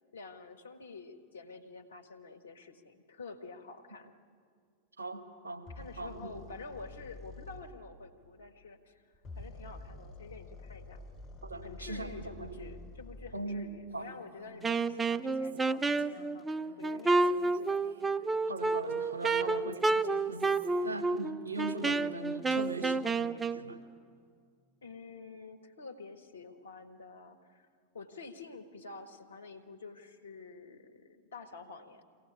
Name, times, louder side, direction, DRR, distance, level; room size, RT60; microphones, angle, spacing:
voice 1, 0.1-4.1 5.7-9.0 9.3-11.0 11.6-16.5 16.8-18.3 19.4-19.6 20.7-21.0 24.8-27.7 27.9-32.0, left 4 dB, 70° left, 6 dB, 1.7 m, -48 dB
voice 2, 5.0-5.6 6.0-6.4 11.4-12.7 13.3-13.7 13.9-14.1 18.5-19.8 20.3-20.5 20.8-23.8, right 2 dB, 80° right, 4 dB, 1.7 m, -40 dB
sound 1, 5.7-7.7 9.1-13.5, left 2 dB, 20° left, 4.6 m, -48 dB
Female speech woman speaking, 13.9-19.3 19.7-22.8, right 3 dB, 60° right, 4.3 m, -58 dB
Wind instrument woodwind instrument, 14.6-23.6, right 3 dB, 10° right, 0.5 m, -30 dB
24.0 x 17.5 x 8.7 m, 2.1 s
figure-of-eight pair, 90°, 0 cm